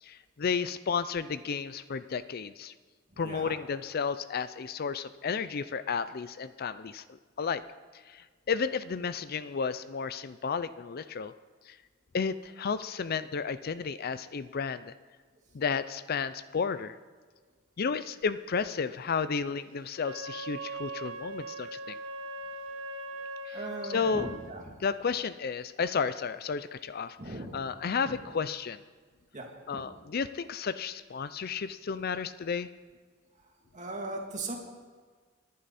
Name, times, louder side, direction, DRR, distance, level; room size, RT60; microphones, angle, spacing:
voice 1, 0.0-2.7 3.2-7.6 8.1-11.3 11.7-11.8 12.1-14.9 15.5-17.0 17.8-22.0 23.5-24.3 24.8-28.8 29.7-32.7, left 5 dB, 50° left, 13 dB, 0.5 m, -32 dB
Wind instrument woodwind instrument, 20.0-24.4, right 2 dB, 70° right, 1.7 m, -40 dB
voice 2, 23.5-24.7 27.2-27.5 28.0-28.1 29.3-29.4 29.7-29.8 33.7-34.5, right 2 dB, 35° right, 0 dB, 2.7 m, -38 dB
29.5 x 11.0 x 4.2 m, 1.5 s
head